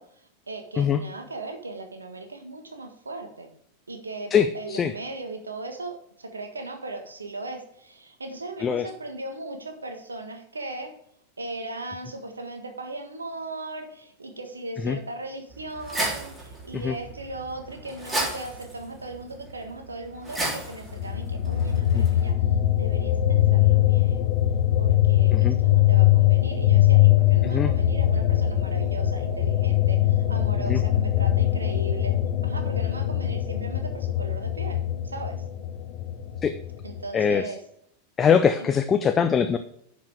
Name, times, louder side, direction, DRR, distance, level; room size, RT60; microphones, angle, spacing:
voice 1, 0.0-3.5 3.9-10.9 11.4-24.3 24.8-32.2 32.4-35.4 36.8-37.6, right 2 dB, 75° right, 6 dB, 1.5 m, -38 dB
voice 2, 4.3-4.9 8.6-8.9 14.8-15.0 16.7-17.0 21.9-22.0 25.3-25.6 27.4-27.7 30.7-30.8 36.4-36.5 37.1-37.5 38.2-39.6, left 7 dB, 20° left, 9 dB, 0.5 m, -22 dB
sound 1, 15.5-22.3, right 1 dB, 15° right, 3.5 m, -34 dB
sound 2, 20.9-37.1, left 13 dB, 40° left, 1.0 m, -22 dB
10.5 x 5.3 x 5.0 m, 0.72 s
figure-of-eight pair, 90°, 0 cm